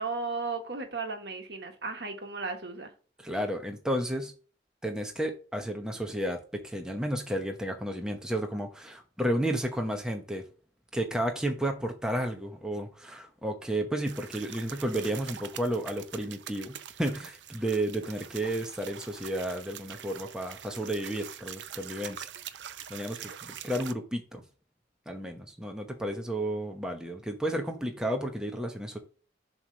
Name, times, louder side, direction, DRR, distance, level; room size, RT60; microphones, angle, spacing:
voice 1, 0.0-2.9, right 4 dB, 70° right, 1.4 m, -35 dB
voice 2, 3.2-4.3 4.8-10.4 10.9-22.3 22.9-24.4 25.1-29.0, right 1 dB, 5° right, 0.8 m, -32 dB
sound 1, 14.1-23.9, right 9 dB, 90° right, 0.5 m, -44 dB
7.2 x 3.1 x 5.2 m
head